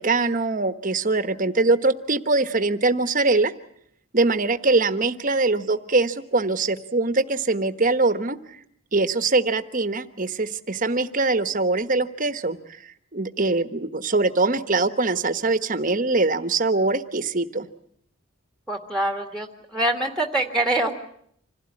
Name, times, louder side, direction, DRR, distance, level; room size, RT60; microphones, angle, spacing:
voice 1, 0.0-3.5 4.1-8.6 8.9-12.6 12.8-17.7, right 3 dB, 40° right, 10 dB, 1.2 m, -22 dB
voice 2, 18.7-20.9, right 1 dB, 5° left, 3 dB, 1.9 m, -24 dB
26.5 x 16.5 x 9.8 m, 0.68 s
head